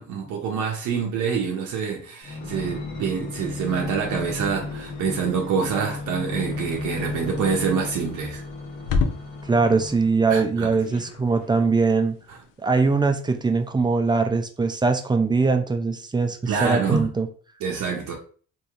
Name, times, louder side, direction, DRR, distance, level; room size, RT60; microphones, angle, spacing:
voice 1, 0.0-8.4 10.3-10.7 12.3-12.4 16.5-17.1 17.6-18.1, right 6 dB, 80° right, 0.6 m, -26 dB
sound 1, 2.2-10.2 10.8-12.1 12.7-12.8, left 3 dB, 70° left, 1.1 m, -35 dB
sound 2, 4.8-13.7, left 4 dB, 90° left, 0.5 m, -35 dB
voice 2, 9.5-12.2 12.6-17.3, right 4 dB, 15° right, 0.3 m, -21 dB
2.9 x 2.6 x 2.4 m
cardioid pair, 90°, 30 cm